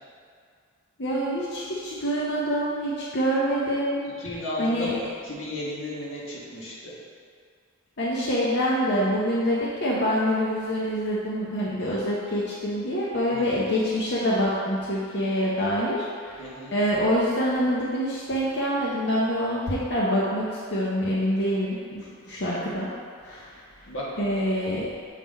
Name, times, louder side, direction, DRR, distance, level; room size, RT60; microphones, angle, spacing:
voice 1, 1.0-4.1 4.6-5.0 8.0-16.5 16.7-22.9 23.2-23.6 24.2-24.9, equal, 55° left, -6 dB, 0.7 m, -26 dB
voice 2, 4.2-6.9 13.3-13.5 16.4-16.7 23.9-24.1 24.4-24.5, left 1 dB, 85° left, -6 dB, 1.5 m, -34 dB
7.3 x 3.8 x 4.1 m, 2.1 s
head